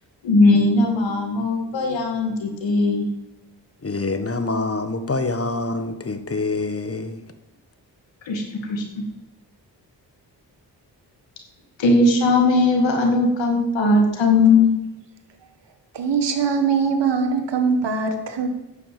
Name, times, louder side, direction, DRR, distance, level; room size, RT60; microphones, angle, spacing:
voice 1, 0.2-3.1 8.3-8.4 8.7-8.8 11.8-14.7, left 3 dB, 85° left, 2 dB, 2.4 m, -18 dB
voice 2, 3.8-7.2, left 3 dB, 30° left, 9 dB, 1.6 m, -26 dB
voice 3, 15.9-18.5, right 5 dB, 70° right, 6 dB, 1.7 m, -22 dB
10.5 x 6.9 x 7.7 m, 0.94 s
supercardioid pair, 40°, 44 cm